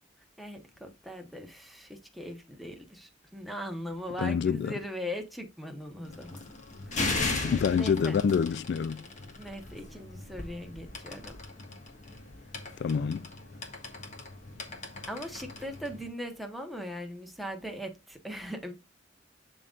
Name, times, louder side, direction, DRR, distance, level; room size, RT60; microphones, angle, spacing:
voice 1, 0.4-6.4 6.9-8.1 9.4-11.4 15.1-18.7, equal, ahead, 1.0 m, -40 dB
voice 2, 4.2-4.7 7.4-9.0 12.8-13.3, left 6 dB, 65° left, 0.3 m, -27 dB
sound 1, 6.1-16.1, left 3 dB, 40° left, 1.5 m, -38 dB
11.0 x 3.8 x 2.4 m
head